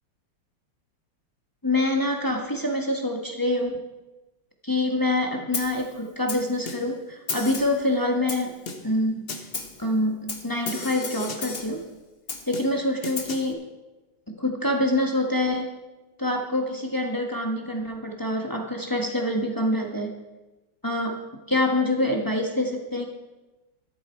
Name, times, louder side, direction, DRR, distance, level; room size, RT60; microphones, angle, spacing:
voice 1, 1.6-3.8 4.6-8.6 8.8-9.2 9.8-11.8 12.5-13.6 14.4-15.7 16.2-20.2 20.8-23.1, left 1 dB, 15° left, 1 dB, 1.2 m, -26 dB
Snare drum, 5.5-5.9 6.3-7.0 7.3-7.8 8.3-9.0 9.3-9.8 10.3-11.8 12.3-13.5, left 4 dB, 40° left, 1.1 m, -34 dB
13.0 x 11.0 x 4.6 m, 1.1 s
omnidirectional pair, 2.0 m